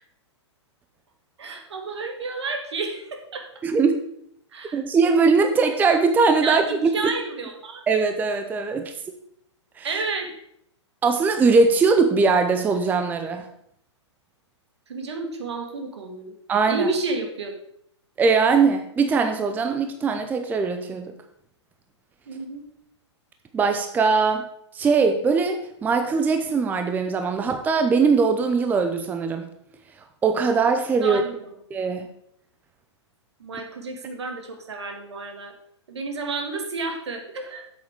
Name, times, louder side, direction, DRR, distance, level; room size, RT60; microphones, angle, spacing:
voice 1, 1.4-3.5 4.5-4.8 6.4-7.8 9.8-10.3 14.9-16.3 16.7-17.5 22.3-22.6 31.0-31.5 33.4-35.5 35.9-37.6, right 3 dB, 65° right, 4 dB, 1.9 m, -31 dB
voice 2, 3.6-4.0 4.7-7.1 7.9-8.9 9.8-9.9 11.0-13.4 16.5-16.9 18.2-21.1 23.5-24.5 24.7-29.5 30.2-31.2 31.7-32.1, right 4 dB, 10° right, 6 dB, 0.6 m, -21 dB
8.5 x 7.8 x 3.6 m, 0.71 s
figure-of-eight pair, 115°, 15 cm